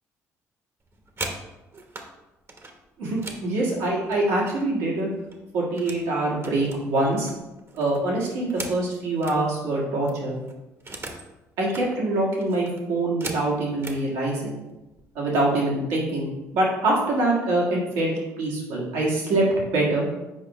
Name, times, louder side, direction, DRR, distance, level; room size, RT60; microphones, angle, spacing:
sound 1, 0.8-2.1 2.5-4.8 5.1-6.1 6.4-9.4 9.8-9.9 10.1-11.3 11.6-11.9 12.4-14.0 14.9-15.0 15.4-15.7 16.0-16.5, right 2 dB, 35° right, 1.1 m, -39 dB
voice 1, 3.0-5.1 5.5-7.3 7.7-10.4 11.6-14.6 15.1-17.6 17.9-19.4 19.7-20.0, right 2 dB, 80° right, -4 dB, 1.8 m, -24 dB
6.3 x 4.9 x 3.1 m, 1.0 s
hypercardioid pair, 60°, 7 cm